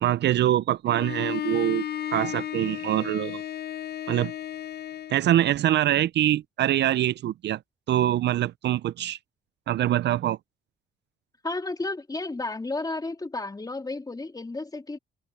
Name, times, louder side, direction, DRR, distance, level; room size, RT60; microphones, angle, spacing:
voice 1, 0.0-1.8 2.1-3.4 4.1-4.3 5.1-7.6 7.9-9.2 9.7-10.4, right 12 dB, 60° right, 0.5 m, -24 dB
Bowed string instrument, 0.9-5.3, left 10 dB, 55° left, 0.7 m, -34 dB
voice 2, 11.4-15.0, left 2 dB, 20° left, 3.3 m, -32 dB
cardioid pair, 90°, 20 cm